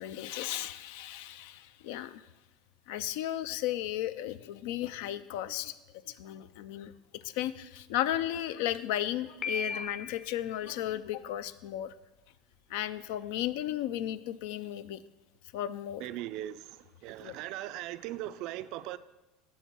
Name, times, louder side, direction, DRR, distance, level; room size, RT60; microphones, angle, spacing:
voice 1, 0.0-2.2 2.9-5.7 6.1-6.9 7.2-11.9 12.7-15.0 15.5-16.0 17.2-17.4, left 12 dB, 75° left, 0.3 m, -34 dB
Piano, 9.4-10.4, left 4 dB, 35° left, 0.7 m, -36 dB
voice 2, 16.0-16.8 17.0-19.0, right 14 dB, 65° right, 0.3 m, -39 dB
7.1 x 3.6 x 6.0 m
supercardioid pair, 100°, 0 cm